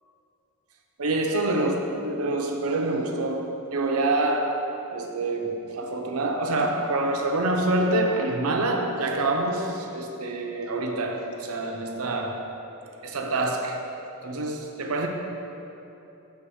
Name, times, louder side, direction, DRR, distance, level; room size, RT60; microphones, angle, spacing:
voice 1, 1.0-1.8 2.0-12.5 13.0-13.9 14.2-15.1, right 2 dB, 75° right, 2 dB, 0.7 m, -26 dB
7.6 x 3.6 x 6.2 m, 2.9 s
head